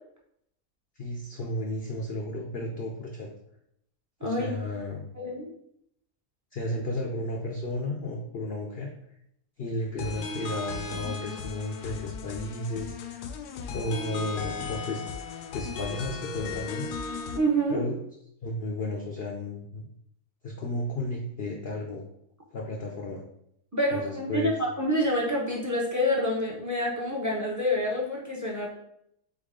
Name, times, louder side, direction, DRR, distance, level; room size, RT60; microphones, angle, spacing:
voice 1, 1.0-3.3 4.2-5.1 6.5-8.9 9.6-13.3 13.7-15.0 15.5-16.9 17.7-18.0 18.4-19.9 20.4-22.1 22.5-23.2 23.9-24.5, left 1 dB, 60° left, 0 dB, 0.6 m, -33 dB
voice 2, 4.2-4.5 5.2-5.5 17.3-17.8 23.7-28.7, equal, 20° right, -3 dB, 0.5 m, -27 dB
sound 1, 10.0-17.4, left 4 dB, 90° left, 1.1 m, -36 dB
4.0 x 3.6 x 3.6 m, 0.73 s
omnidirectional pair, 1.6 m